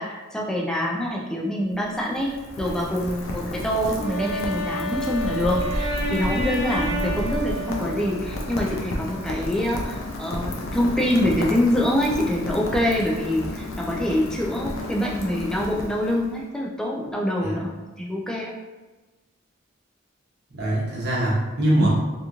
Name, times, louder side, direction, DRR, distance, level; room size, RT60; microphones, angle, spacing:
voice 1, 0.0-17.7 18.0-18.5 21.8-21.9, left 1 dB, 5° left, -2 dB, 0.3 m, -25 dB
Rain, 1.6-16.4, left 1 dB, 85° left, 0.5 m, -32 dB
Wind instrument woodwind instrument, 3.9-8.7, equal, 50° left, 1.0 m, -30 dB
voice 2, 20.5-21.9, right 1 dB, 55° right, -7 dB, 1.0 m, -23 dB
2.9 x 2.5 x 2.4 m, 1.2 s
head